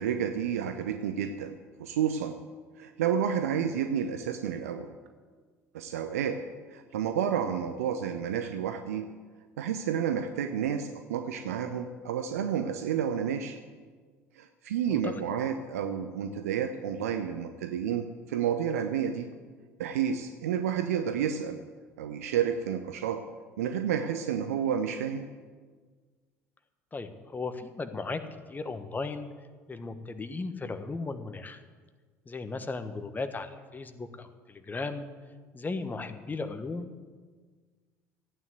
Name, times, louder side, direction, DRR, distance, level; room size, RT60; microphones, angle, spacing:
voice 1, 0.0-2.4 2.8-4.9 5.7-6.4 6.7-9.1 9.6-13.6 14.4-19.3 19.8-21.6 22.0-23.2 23.6-25.3, right 8 dB, 70° right, 8 dB, 0.7 m, -30 dB
voice 2, 26.9-28.2 28.5-29.3 29.7-31.6 32.2-35.1 35.5-36.9, left 3 dB, 20° left, 9 dB, 1.4 m, -36 dB
14.5 x 9.4 x 7.9 m, 1.5 s
figure-of-eight pair, 60°, 8 cm